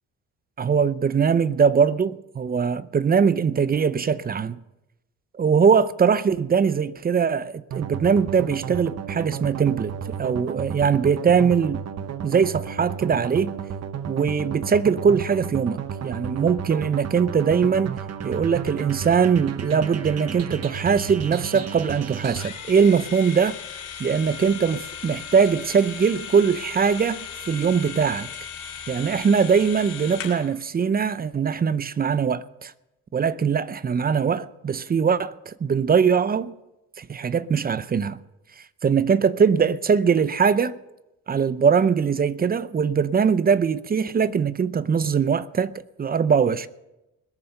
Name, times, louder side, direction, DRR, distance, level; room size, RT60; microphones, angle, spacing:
voice 1, 0.6-4.6 5.4-11.8 12.2-13.5 14.1-23.6 24.0-28.3 28.9-32.7 33.1-36.5 37.0-38.2 38.8-40.8 41.3-46.7, right 6 dB, 30° right, 0.6 m, -21 dB
sound 1, 7.7-22.5, right 7 dB, 55° right, 1.0 m, -33 dB
sound 2, 22.4-30.5, left 7 dB, 75° left, 2.9 m, -37 dB
20.5 x 7.0 x 6.5 m
cardioid pair, 90°, 30 cm